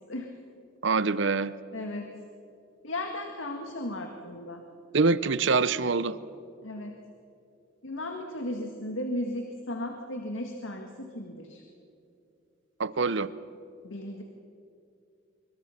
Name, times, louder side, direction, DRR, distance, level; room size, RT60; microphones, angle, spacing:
voice 1, 0.8-1.5 4.9-6.2 12.8-13.3, right 4 dB, 60° right, 17 dB, 0.7 m, -25 dB
voice 2, 1.7-2.1 2.8-4.6 6.6-7.0 7.8-11.6 13.8-14.2, left 1 dB, 70° left, 3 dB, 1.9 m, -35 dB
25.5 x 24.5 x 5.9 m, 2.6 s
head